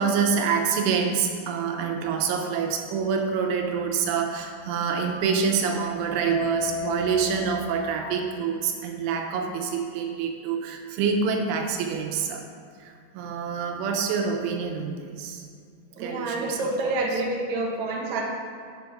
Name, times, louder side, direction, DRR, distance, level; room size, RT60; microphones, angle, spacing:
voice 1, 0.0-12.4 12.8-15.4 16.0-17.2 18.1-18.2, right 6 dB, 85° right, 3 dB, 3.3 m, -27 dB
Mallet percussion, 6.3-8.8, left 10 dB, 85° left, 3.0 m, -35 dB
voice 2, 16.0-18.2, right 2 dB, 65° right, -2 dB, 1.9 m, -28 dB
8.2 x 7.1 x 5.8 m, 2.2 s
omnidirectional pair, 5.5 m